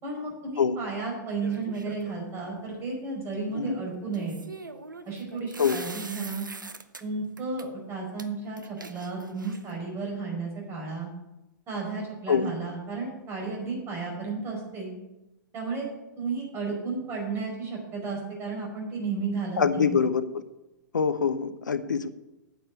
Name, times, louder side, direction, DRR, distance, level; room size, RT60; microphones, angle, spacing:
voice 1, 0.0-4.4 5.0-6.5 7.0-11.1 11.7-14.9 15.5-15.9 16.2-20.0, right 4 dB, 25° right, 0 dB, 4.9 m, -33 dB
sound 1, 1.4-2.2 4.1-7.0 7.4-7.6 8.2-8.3 8.6-9.7, right 3 dB, 80° right, 0.9 m, -42 dB
voice 2, 19.6-20.4 20.9-22.1, left 6 dB, 75° left, 13 dB, 0.7 m, -24 dB
9.2 x 6.7 x 8.1 m, 0.96 s
figure-of-eight pair, 105°, 10 cm